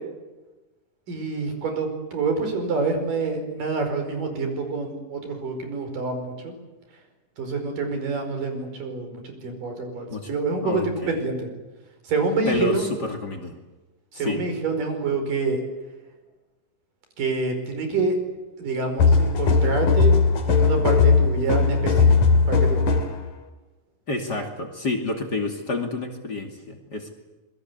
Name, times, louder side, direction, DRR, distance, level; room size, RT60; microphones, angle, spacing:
voice 1, 1.1-6.5 7.4-11.5 12.1-12.8 14.1-15.6 17.2-18.2 18.6-20.1 20.5-22.2 22.5-22.9, right 3 dB, 80° right, 6 dB, 6.6 m, -27 dB
voice 2, 10.6-11.2 12.5-13.5 14.1-14.4 24.1-27.1, left 2 dB, 30° left, 4 dB, 2.8 m, -29 dB
sound 1, 19.0-23.2, left 4 dB, 70° left, 4.0 m, -18 dB
27.0 x 22.5 x 8.2 m, 1.1 s
omnidirectional pair, 3.8 m